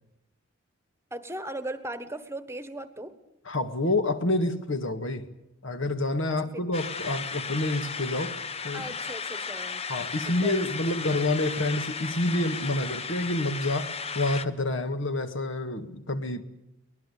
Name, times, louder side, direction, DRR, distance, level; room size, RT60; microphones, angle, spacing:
voice 1, 1.1-3.1 6.4-6.6 8.7-9.8 10.4-10.9, right 1 dB, 10° right, 1.3 m, -37 dB
voice 2, 3.5-5.3 5.6-8.8 9.9-16.4, left 2 dB, 65° left, 1.9 m, -28 dB
sound 1, 6.7-14.5, left 5 dB, 30° left, 0.9 m, -35 dB
24.0 x 20.0 x 8.5 m
head